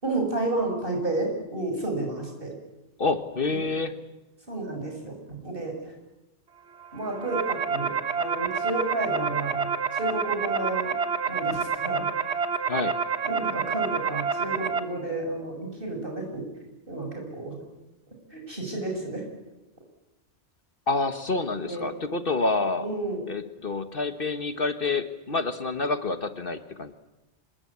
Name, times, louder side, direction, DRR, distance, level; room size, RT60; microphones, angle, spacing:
voice 1, 0.0-2.5 3.5-3.6 4.5-5.9 6.9-10.9 11.3-12.1 13.2-16.5 16.9-17.6 18.3-19.2 21.6-21.9 22.8-23.2, right 2 dB, 50° right, 2 dB, 6.8 m, -31 dB
voice 2, 3.0-3.9 12.7-12.9 20.9-22.9 23.3-26.9, left 3 dB, 50° left, 9 dB, 1.5 m, -28 dB
sound 1, 7.0-14.8, right 6 dB, 65° right, 1.5 m, -28 dB
26.0 x 21.0 x 8.6 m, 1.0 s
omnidirectional pair, 1.2 m